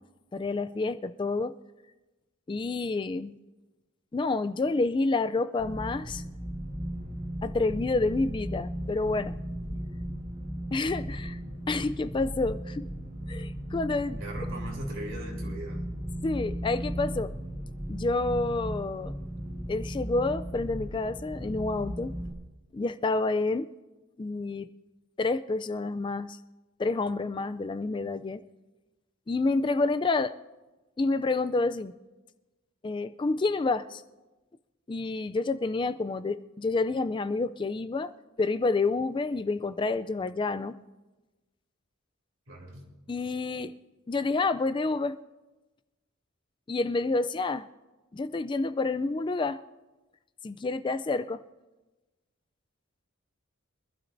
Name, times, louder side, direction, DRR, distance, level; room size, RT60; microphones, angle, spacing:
voice 1, 0.3-1.5 2.5-3.3 4.1-6.2 7.4-9.4 10.7-11.4 11.7-12.8 13.3-14.2 16.2-17.3 17.9-19.2 19.7-22.1 22.7-23.7 24.2-24.7 25.2-26.4 26.8-28.4 29.3-30.3 31.0-31.9 32.8-34.0 34.9-38.1 38.4-40.7 43.1-43.7 44.1-45.2 46.7-47.7 48.1-49.6 50.4-51.4, left 3 dB, 25° left, 11 dB, 0.3 m, -28 dB
sound 1, 5.6-22.3, equal, 40° right, 1.6 m, -36 dB
voice 2, 14.2-15.8 42.5-42.9, right 1 dB, 75° right, 0 dB, 3.2 m, -40 dB
24.0 x 12.0 x 2.6 m, 1.1 s
head